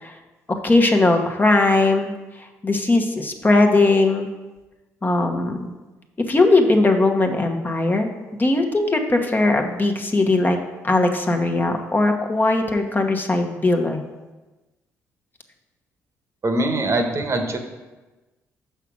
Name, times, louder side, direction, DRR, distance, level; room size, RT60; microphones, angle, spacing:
voice 1, 0.5-2.1 2.6-4.3 5.0-5.7 6.3-10.6 10.8-14.0, left 2 dB, 25° left, 3 dB, 1.1 m, -19 dB
voice 2, 16.4-17.6, right 2 dB, 40° right, 5 dB, 1.2 m, -22 dB
5.9 x 5.7 x 6.1 m, 1.2 s
hypercardioid pair, 50°, 7 cm